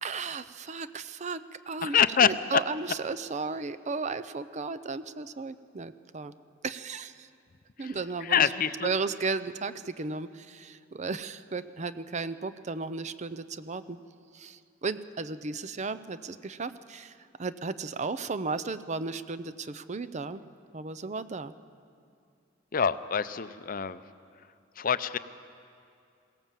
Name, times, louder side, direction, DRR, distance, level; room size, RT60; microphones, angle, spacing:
voice 1, 0.0-6.3 6.6-7.3 7.8-8.4 8.8-14.0 14.3-20.4 20.7-21.5, right 4 dB, 35° right, 13 dB, 0.6 m, -35 dB
voice 2, 1.8-2.3 7.8-7.9 8.2-8.9 22.7-24.0 24.8-25.2, left 7 dB, 45° left, 13 dB, 0.6 m, -25 dB
21.5 x 17.0 x 7.5 m, 2.4 s
head